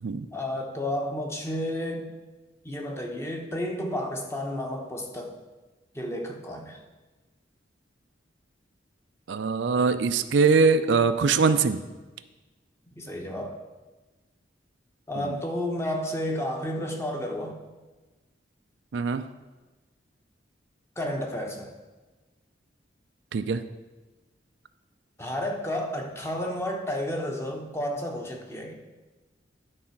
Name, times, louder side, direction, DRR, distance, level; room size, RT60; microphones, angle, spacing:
voice 1, 0.3-2.1 2.6-5.3 5.9-6.8 12.9-13.6 15.1-17.6 21.0-21.7 25.2-28.7, left 1 dB, 15° left, 1 dB, 1.0 m, -31 dB
voice 2, 9.3-11.8 15.2-15.4 18.9-19.2 23.3-23.6, right 4 dB, 75° right, 10 dB, 0.4 m, -22 dB
11.0 x 4.1 x 5.8 m, 1.2 s
head